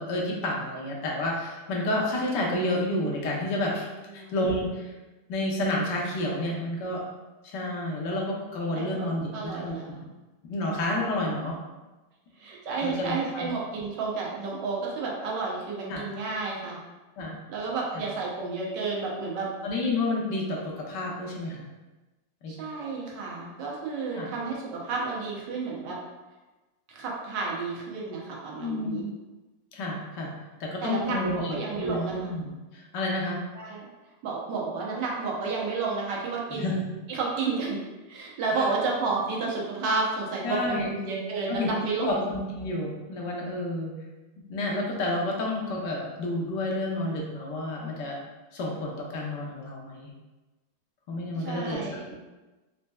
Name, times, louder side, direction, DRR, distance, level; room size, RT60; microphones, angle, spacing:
voice 1, 0.0-4.9 5.3-7.0 7.4-9.8 10.5-11.6 12.8-13.5 15.9-16.0 17.2-17.4 17.9-18.0 19.6-21.7 22.4-22.5 24.1-24.3 28.6-29.0 29.7-30.3 30.6-33.4 36.5-36.7 38.6-38.7 40.4-40.9 41.5-41.7 42.0-43.9 44.5-48.2 48.5-50.1 51.1-52.0, left 1 dB, 75° left, -1 dB, 1.3 m, -30 dB
voice 2, 4.1-4.6 8.7-10.0 12.4-16.8 17.5-19.5 22.5-26.0 26.9-29.0 30.8-32.2 33.5-33.9 34.2-36.8 37.1-37.8 38.1-42.3 51.3-52.0, right 4 dB, 80° right, -3 dB, 1.4 m, -31 dB
4.2 x 2.6 x 2.2 m, 1.2 s
omnidirectional pair, 1.9 m